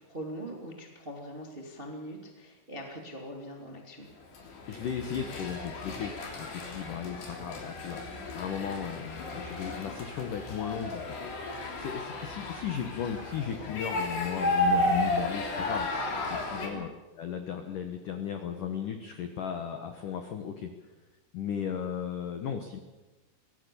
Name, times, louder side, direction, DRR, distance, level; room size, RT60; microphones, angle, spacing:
voice 1, 0.0-4.1 16.6-16.8, equal, 25° right, 1 dB, 1.1 m, -42 dB
sound 1, 4.4-16.7, left 1 dB, 55° left, 5.1 m, -33 dB
voice 2, 4.7-8.0 8.3-11.2 11.8-16.9 17.2-20.7 21.3-22.8, left 8 dB, 80° left, 6 dB, 1.9 m, -35 dB
24.5 x 17.5 x 7.0 m, 1.1 s
omnidirectional pair, 5.8 m